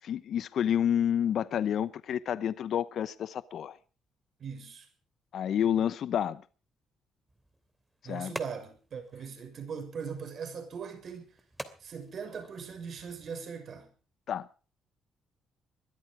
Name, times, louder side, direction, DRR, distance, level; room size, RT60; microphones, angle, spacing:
voice 1, 0.0-3.8 5.3-6.4 8.0-8.3 14.3-14.5, left 9 dB, 65° left, 0.9 m, -29 dB
voice 2, 4.4-4.8 8.0-11.3 11.8-13.9, right 6 dB, 55° right, 6.7 m, -40 dB
sound 1, 7.3-13.3, right 1 dB, 10° right, 2.8 m, -48 dB
21.5 x 13.0 x 4.9 m
cardioid pair, 95°, 0 cm